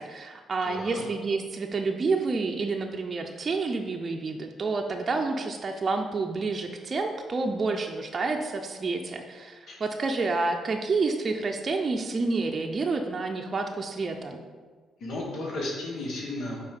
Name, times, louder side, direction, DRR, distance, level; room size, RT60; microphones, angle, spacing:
voice 1, 0.0-14.4, right 3 dB, 35° right, 3 dB, 0.6 m, -29 dB
voice 2, 0.6-1.0 9.7-9.8 15.0-16.6, left 2 dB, 65° left, -2 dB, 1.5 m, -34 dB
5.4 x 4.1 x 5.3 m, 1.5 s
cardioid pair, 90°, 0 cm